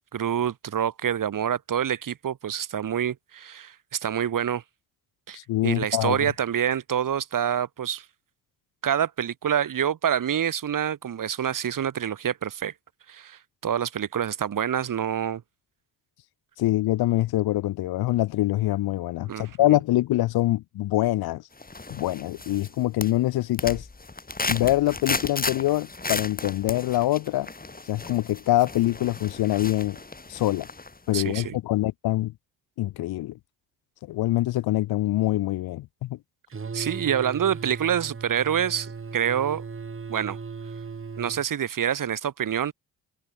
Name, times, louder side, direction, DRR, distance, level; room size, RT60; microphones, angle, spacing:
voice 1, 0.1-4.6 5.3-8.0 8.8-12.7 13.1-15.4 19.3-19.8 31.1-31.6 36.7-39.6 40.1-40.4 41.2-42.7, right 9 dB, 60° right, 2.1 m, -27 dB
voice 2, 5.3-6.2 16.6-21.4 21.9-23.9 24.5-27.5 27.9-30.0 30.3-30.7 31.1-32.3 32.8-33.4 34.1-36.2, left 16 dB, 80° left, 1.3 m, -24 dB
sound 1, 21.6-22.7 23.0-31.0 31.3-31.4, left 3 dB, 25° left, 3.3 m, -34 dB
sound 2, 36.5-41.5, right 5 dB, 35° right, 2.1 m, -37 dB
supercardioid pair, 55°, 37 cm